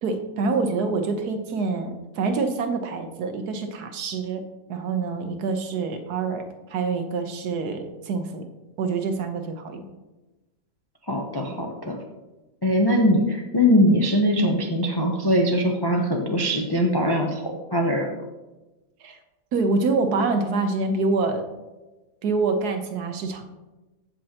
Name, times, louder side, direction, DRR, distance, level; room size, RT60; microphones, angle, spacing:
voice 1, 0.0-4.4 4.7-8.5 8.8-9.9 19.0-19.2 19.5-21.5 22.2-23.4, right 4 dB, 65° right, 7 dB, 1.3 m, -26 dB
voice 2, 11.1-12.0 12.6-17.4 17.7-18.1, equal, 35° left, 1 dB, 0.3 m, -21 dB
15.0 x 5.4 x 2.9 m, 1.1 s
omnidirectional pair, 1.9 m